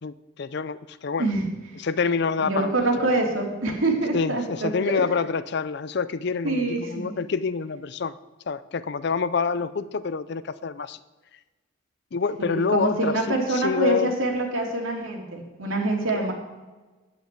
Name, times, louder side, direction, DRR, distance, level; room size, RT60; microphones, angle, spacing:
voice 1, 0.0-1.2 1.8-2.7 4.1-8.1 8.5-11.0 12.1-14.1 16.1-16.3, left 5 dB, 55° left, 16 dB, 0.5 m, -27 dB
voice 2, 2.4-5.0 6.4-7.1 12.4-16.3, right 2 dB, 80° right, 0 dB, 2.7 m, -25 dB
10.5 x 8.0 x 8.2 m, 1.2 s
head